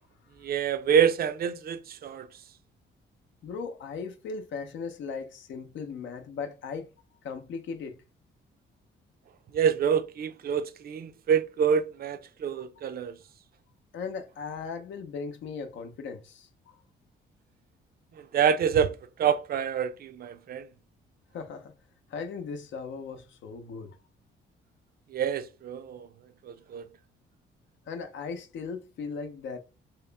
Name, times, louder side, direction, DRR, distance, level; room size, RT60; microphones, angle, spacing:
voice 1, 0.4-2.3 9.5-13.1 18.3-20.7 25.1-26.1 26.4-26.8, right 7 dB, 50° right, 0.5 m, -27 dB
voice 2, 3.4-6.9 7.2-8.0 13.9-16.8 21.3-21.7 22.1-24.0 27.9-29.6, left 5 dB, 70° left, 0.7 m, -37 dB
2.9 x 2.9 x 3.3 m
cardioid pair, 90°, 20 cm